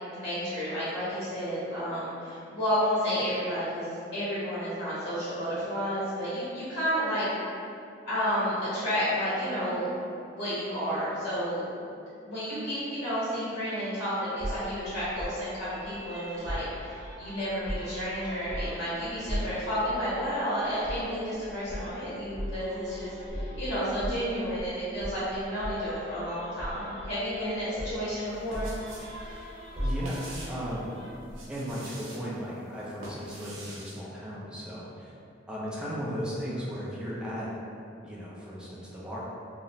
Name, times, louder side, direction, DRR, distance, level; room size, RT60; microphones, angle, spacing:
voice 1, 0.1-7.3 8.0-9.9 10.3-11.6 11.8-12.0 12.2-28.7, equal, 75° left, -12 dB, 1.0 m, -31 dB
sound 1, 14.4-15.4 16.5-17.2 17.5-18.1 18.5-18.9 19.3-19.7 20.8-21.1 21.7-21.9 22.3-22.6 23.3-24.7 25.0-25.9 26.6-27.4 27.8-28.1 28.5-29.3 29.8-30.4 31.3-31.5, equal, 20° right, 0.9 m, -36 dB
sound 2, 15.6-31.1, equal, 40° left, 0.6 m, -47 dB
sound 3, 28.3-29.2 29.4-30.7 31.2-32.2 32.8-34.0, right 1 dB, 85° right, 0.6 m, -44 dB
voice 2, 29.8-31.0 31.5-35.1 35.5-37.5 38.0-39.3, equal, 5° right, -7 dB, 0.4 m, -36 dB
2.8 x 2.0 x 2.6 m, 2.5 s
head